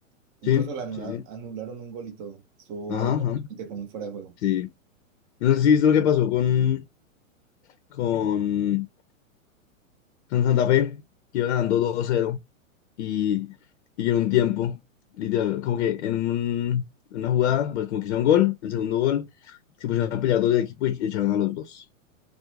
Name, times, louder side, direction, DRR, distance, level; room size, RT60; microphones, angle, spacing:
voice 1, 0.4-4.3 20.1-20.2, right 6 dB, 20° right, 0.4 m, -37 dB
voice 2, 2.9-3.4 4.4-4.7 5.4-6.8 7.9-8.9 10.3-11.0 11.3-12.4 13.0-13.5 14.0-14.8 15.2-16.8 17.1-21.8, left 10 dB, 55° left, 0.6 m, -23 dB
2.4 x 2.1 x 2.9 m
hypercardioid pair, 130°, 41 cm